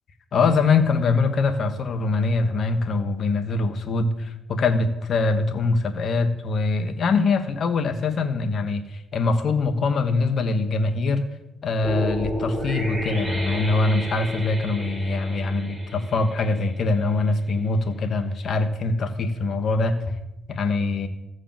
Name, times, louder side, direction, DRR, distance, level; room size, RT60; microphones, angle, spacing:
voice 1, 0.3-11.2 11.6-20.1 20.5-21.1, left 3 dB, 55° left, 6 dB, 1.4 m, -23 dB
sound 1, 11.8-17.0, equal, 15° right, 4.2 m, -32 dB
14.5 x 4.9 x 7.6 m, 0.92 s
cardioid pair, 90°, 0 cm